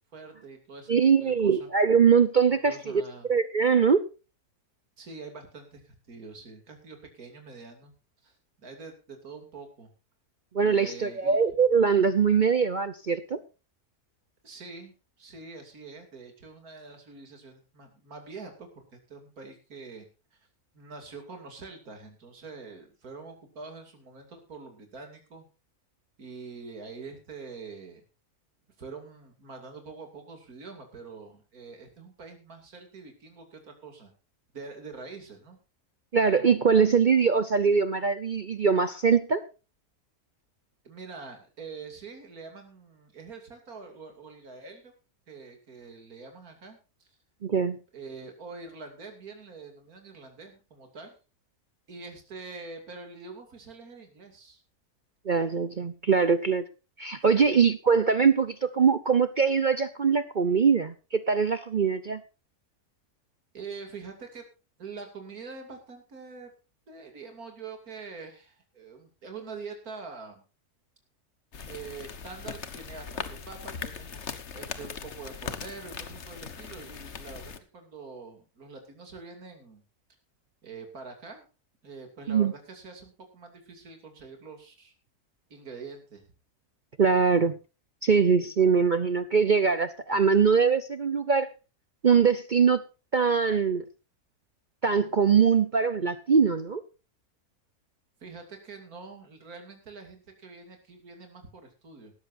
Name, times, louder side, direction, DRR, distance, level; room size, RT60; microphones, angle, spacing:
voice 1, 0.1-1.7 2.7-3.3 5.0-7.9 8.2-9.9 10.6-11.4 14.4-20.1 20.3-20.4 20.7-25.4 26.2-28.0 28.8-34.1 34.5-35.6 40.8-44.9 45.3-47.1 47.9-51.1 51.9-54.6 57.4-57.6 63.5-64.4 64.8-66.5 66.9-70.4 71.6-74.2 74.5-79.8 80.6-81.4 81.8-84.9 85.5-86.2 98.2-102.1, right 4 dB, 65° right, 4 dB, 3.2 m, -45 dB
voice 2, 0.9-3.0 3.3-4.1 10.5-13.4 36.1-39.4 47.4-47.8 55.3-56.6 57.0-62.2 82.3-82.5 87.0-87.6 88.0-91.5 92.0-92.8 93.1-93.8 94.8-96.8, right 6 dB, 45° right, 12 dB, 0.6 m, -22 dB
sound 1, 71.5-77.6, left 6 dB, 50° left, 1.4 m, -39 dB
18.0 x 13.5 x 2.6 m, 0.31 s
omnidirectional pair, 1.7 m